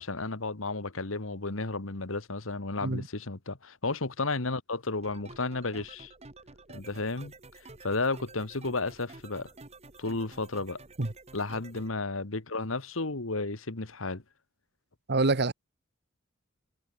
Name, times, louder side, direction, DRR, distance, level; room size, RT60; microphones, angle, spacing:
voice 1, 0.0-6.1 6.7-7.3 7.8-9.5 10.0-10.8 11.3-14.2, left 3 dB, 80° left, 1.8 m, -33 dB
sound 1, 5.0-11.9, right 3 dB, 35° right, 2.0 m, -50 dB
voice 2, 15.1-15.5, right 3 dB, 55° right, 1.3 m, -26 dB
head